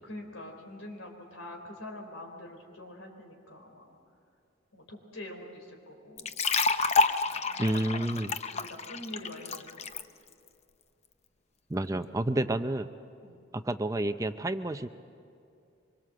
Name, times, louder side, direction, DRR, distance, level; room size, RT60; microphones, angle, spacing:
voice 1, 0.0-3.9 4.7-6.3 7.3-8.1 8.5-9.9 13.2-13.4, left 1 dB, 85° left, 2 dB, 3.8 m, -45 dB
sound 1, 6.2-10.0, left 4 dB, 35° left, 0.7 m, -28 dB
voice 2, 7.6-8.3 11.7-12.9 13.5-14.9, right 1 dB, 15° right, 10 dB, 0.5 m, -30 dB
24.5 x 22.5 x 7.7 m, 2.5 s
head